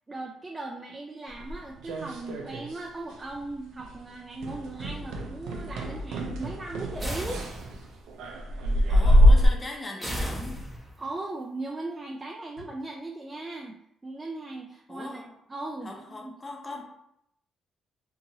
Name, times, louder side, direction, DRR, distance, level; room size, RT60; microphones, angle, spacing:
voice 1, 0.1-7.5 11.0-15.2 15.5-16.3, right 2 dB, 25° right, 0 dB, 0.4 m, -38 dB
sound 1, 1.4-2.9 3.1-3.5 3.8-4.0 4.4-9.5, equal, 85° right, 0.4 m, -24 dB
sound 2, 4.7-4.9 6.7-7.0 8.6-8.9 10.5-10.8 12.5-12.8, left 2 dB, 80° left, 1.2 m, -51 dB
sound 3, 7.0-8.0 10.0-11.1, equal, 10° right, 0.8 m, -34 dB
voice 2, 8.9-10.7 14.9-15.3 15.8-16.8, left 2 dB, 25° left, 0 dB, 0.7 m, -39 dB
2.8 x 2.7 x 2.7 m, 0.75 s
cardioid pair, 90°, 0 cm